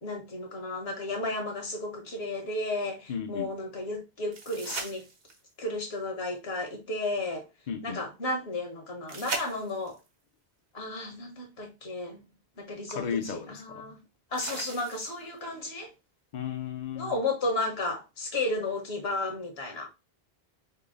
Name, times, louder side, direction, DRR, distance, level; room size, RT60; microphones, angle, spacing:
voice 1, 0.0-5.1 5.6-7.5 7.8-10.0 10.7-12.2 12.6-14.0 14.3-15.9 17.0-19.9, left 2 dB, 70° left, 1.6 m, -33 dB
voice 2, 3.1-3.5 7.7-8.0 12.9-13.9 16.3-17.1, left 7 dB, 50° left, 0.6 m, -34 dB
sound 1, 4.3-5.6 9.1-10.1 12.0-12.1 14.4-15.4 18.3-18.4, right 3 dB, 65° right, 1.2 m, -38 dB
5.4 x 2.1 x 3.8 m
omnidirectional pair, 1.1 m